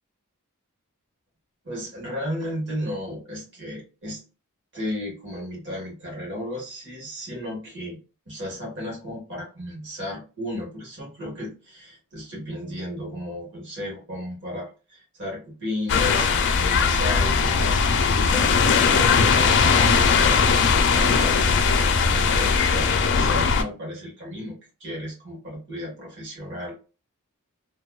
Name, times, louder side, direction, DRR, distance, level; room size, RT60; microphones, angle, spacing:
voice 1, 1.6-4.2 4.7-8.0 8.3-26.8, left 1 dB, 55° right, -2 dB, 1.4 m, -34 dB
sound 1, 15.9-23.6, left 5 dB, 55° left, 0.4 m, -19 dB
2.8 x 2.2 x 2.3 m, 0.32 s
head